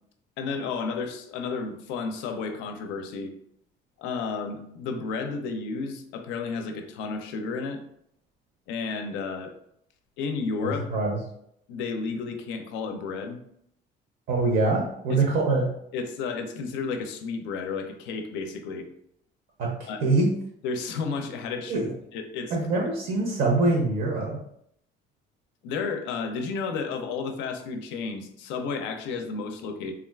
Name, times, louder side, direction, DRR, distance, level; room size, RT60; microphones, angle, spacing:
voice 1, 0.4-3.3 4.0-7.8 8.7-9.5 10.2-10.8 11.7-13.4 15.1-15.2 15.9-18.9 19.9-20.1 20.6-21.9 22.1-22.6 25.6-29.9, left 4 dB, 85° left, 6 dB, 0.5 m, -32 dB
voice 2, 10.6-11.2 14.3-15.7 19.6-19.7 20.0-20.3 21.7-21.9 22.5-24.4, right 3 dB, 55° right, 0 dB, 0.5 m, -24 dB
3.5 x 2.3 x 2.2 m, 0.72 s
cardioid pair, 175°, 19 cm